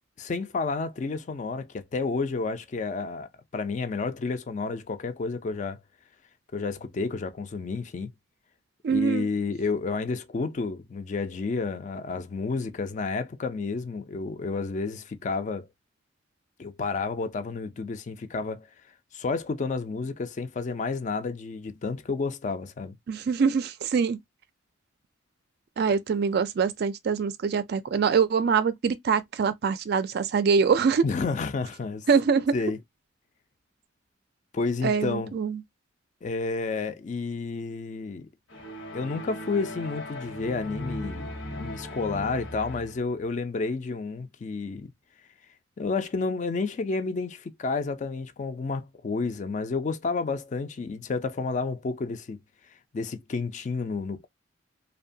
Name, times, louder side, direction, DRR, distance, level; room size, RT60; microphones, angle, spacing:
voice 1, 0.2-5.8 6.5-8.1 8.9-15.7 16.6-18.7 19.1-22.9 31.0-32.1 32.5-32.8 34.5-35.3 36.2-38.3 38.9-44.9 45.8-52.4 52.9-54.3, left 4 dB, 40° left, 0.4 m, -30 dB
voice 2, 8.8-9.3 23.1-24.2 25.8-31.0 32.1-32.5 34.8-35.6, right 5 dB, 55° right, 0.3 m, -24 dB
sound 1, 38.5-43.1, left 1 dB, 80° left, 1.0 m, -38 dB
2.8 x 2.2 x 2.6 m
head